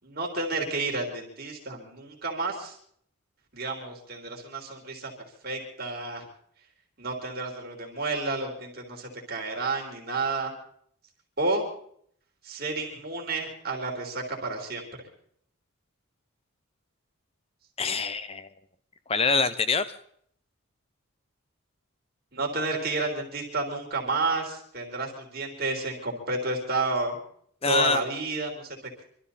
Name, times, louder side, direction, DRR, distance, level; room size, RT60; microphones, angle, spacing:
voice 1, 0.0-2.8 3.5-5.1 5.4-6.3 7.0-10.5 11.4-11.7 12.4-14.8 22.3-27.2 27.7-28.8, right 3 dB, 45° right, 1 dB, 3.7 m, -31 dB
voice 2, 17.8-18.5 19.1-20.0 27.6-28.0, left 4 dB, 25° left, 13 dB, 0.8 m, -25 dB
25.5 x 13.0 x 4.2 m, 0.64 s
head